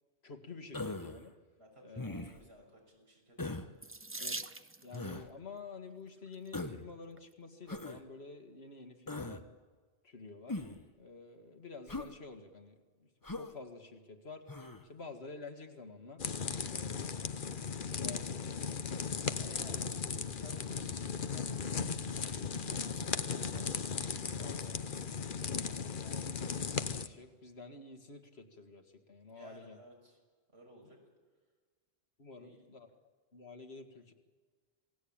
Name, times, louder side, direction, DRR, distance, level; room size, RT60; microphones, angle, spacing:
voice 1, 0.2-1.3 1.8-2.1 4.2-4.4 4.8-9.5 10.0-10.6 11.0-14.5 14.8-16.2 16.6-17.2 17.9-19.8 26.0-29.8 30.8-30.9 32.2-32.9 33.3-34.1, left 3 dB, 85° left, 6 dB, 2.2 m, -50 dB
Human voice, 0.7-1.2 2.0-2.5 3.4-3.7 4.9-5.3 6.5-6.9 7.7-8.0 9.1-9.4 10.5-10.8 11.9-12.1 13.2-13.5 14.5-14.8, left 2 dB, 20° left, 1.1 m, -40 dB
voice 2, 1.6-3.9 16.7-17.0 19.4-20.0 20.4-24.0 24.3-25.3 29.3-30.2 30.5-31.0 32.4-32.7, right 1 dB, 85° right, 0 dB, 6.9 m, -56 dB
Water tap faucet / Sink (filling or washing), 3.8-5.1 6.1-6.5 7.2-7.3 7.6-7.7, right 2 dB, 15° right, 0.6 m, -42 dB
sound 1, 16.2-27.1, left 6 dB, 55° left, 1.1 m, -37 dB
27.5 x 19.0 x 8.8 m, 1.4 s
omnidirectional pair, 1.0 m